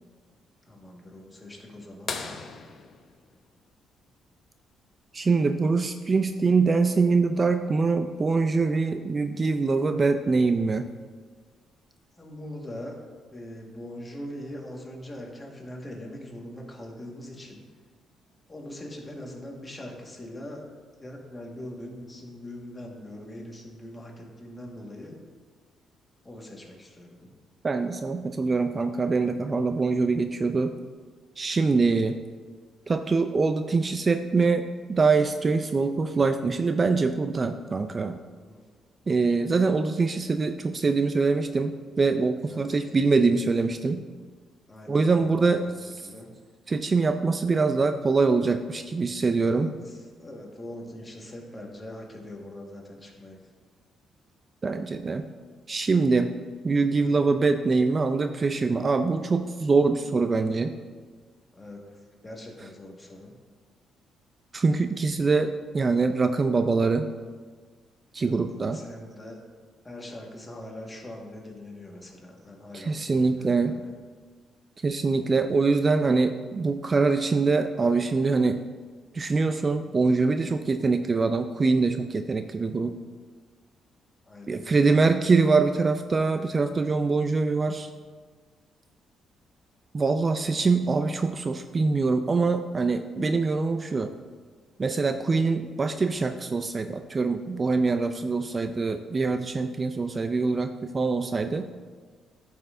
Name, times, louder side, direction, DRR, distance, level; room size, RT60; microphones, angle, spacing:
voice 1, 0.6-2.1 12.2-12.9 13.3-17.6 18.5-20.6 21.0-25.2 26.2-27.3 38.5-38.6 42.5-42.7 44.7-46.3 49.3-53.4 61.5-63.3 68.2-69.4 69.8-73.9 84.3-84.9, left 1 dB, 20° left, -1 dB, 1.6 m, -42 dB
sound 1, 2.1-4.5 6.5-6.6 8.8-8.9 10.6-10.9 11.7-11.8, left 5 dB, 55° left, 0.7 m, -38 dB
voice 2, 5.1-10.9 27.6-30.7 31.4-32.2 32.9-38.2 39.1-44.0 44.9-46.0 46.7-49.7 54.6-55.2 55.7-56.3 56.6-60.7 64.5-67.1 68.1-68.8 72.7-73.7 74.8-78.6 79.1-83.0 84.5-87.9 89.9-94.1 94.8-101.7, right 4 dB, 35° right, 8 dB, 0.3 m, -24 dB
11.0 x 5.6 x 2.6 m, 1.5 s
cardioid pair, 90°, 0 cm